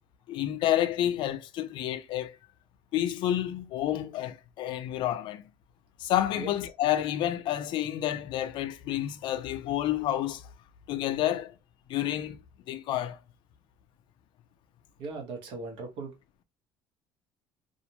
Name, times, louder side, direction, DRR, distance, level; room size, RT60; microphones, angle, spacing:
voice 1, 0.3-2.4 2.9-5.4 6.0-10.5 10.9-11.5 11.9-12.4 12.7-13.2, left 12 dB, 55° left, 0.3 m, -29 dB
voice 2, 15.0-16.1, right 3 dB, 65° right, 1.0 m, -38 dB
2.4 x 2.1 x 2.8 m
cardioid pair, 155°, 9 cm